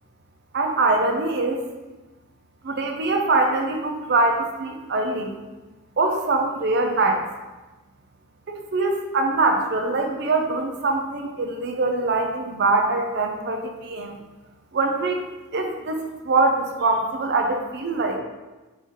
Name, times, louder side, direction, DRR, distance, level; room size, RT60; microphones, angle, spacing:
voice 1, 0.5-1.6 2.6-5.3 6.0-7.2 8.5-14.2 14.7-15.3 15.5-18.2, right 3 dB, 50° right, 4 dB, 0.5 m, -23 dB
3.8 x 3.2 x 4.1 m, 1.2 s
head